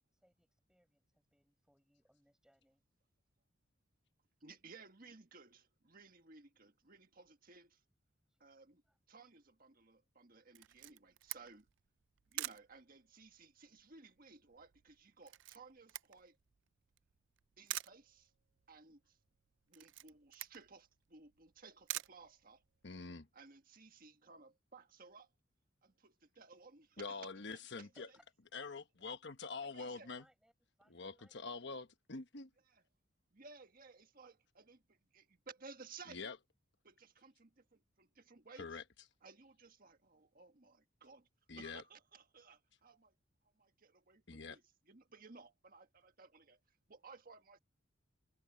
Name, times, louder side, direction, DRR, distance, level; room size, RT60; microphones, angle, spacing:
voice 1, 0.0-2.8 8.2-8.4 8.8-9.0 28.0-28.3 29.8-30.5 30.8-31.7 33.0-33.1, equal, 5° right, 7.4 m, -71 dB
voice 2, 4.4-7.8 8.4-8.8 9.1-11.7 12.3-16.4 17.6-18.3 18.7-19.2 19.7-22.6 23.3-25.3 25.8-27.9 29.6-30.1 32.7-32.8 33.3-36.3 36.8-38.8 39.2-41.3 41.5-43.1 43.5-47.6, right 4 dB, 45° right, 1.6 m, -58 dB
Camera, 10.6-23.0, right 16 dB, 65° right, 0.4 m, -49 dB
voice 3, 22.8-23.3 27.0-28.1 28.5-30.2 30.9-32.5 36.1-36.4 38.6-38.8 41.5-41.8 44.3-44.6, left 4 dB, 60° left, 1.2 m, -45 dB
head